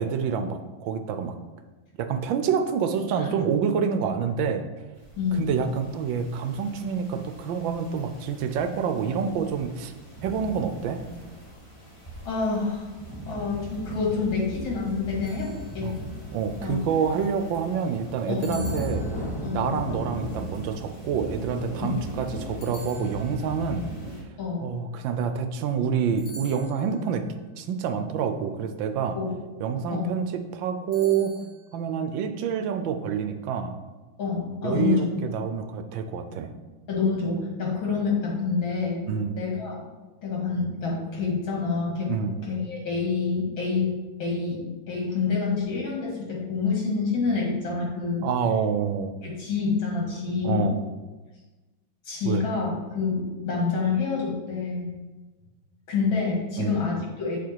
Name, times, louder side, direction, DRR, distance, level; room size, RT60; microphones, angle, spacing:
voice 1, 0.0-1.4 2.0-4.7 5.3-9.9 10.2-11.0 15.8-15.9 16.3-19.0 19.5-23.9 24.6-27.3 27.6-29.2 29.6-31.3 31.7-33.8 34.6-36.5 39.1-39.4 42.1-42.4 48.2-49.1 50.4-50.7 52.3-52.4 56.6-56.7, right 7 dB, 75° right, 8 dB, 1.3 m, -27 dB
sound 1, 5.0-24.2, right 1 dB, 15° left, 1.4 m, -38 dB
voice 2, 5.2-5.5 12.2-12.9 13.3-15.9 16.6-16.8 18.3-18.6 19.4-19.7 21.8-21.9 24.4-24.7 29.1-29.3 29.9-30.1 34.2-35.1 36.9-39.0 39.4-39.8 40.2-42.1 42.5-43.9 44.2-44.6 44.9-48.3 49.2-50.7 52.1-54.9 55.9-57.4, left 4 dB, 80° left, -3 dB, 2.7 m, -27 dB
sound 2, 15.2-16.1 18.4-19.7 22.6-23.7 26.2-27.1 30.9-31.7, equal, 65° left, 2.3 m, -46 dB
7.3 x 4.7 x 4.6 m, 1.2 s
omnidirectional pair, 2.2 m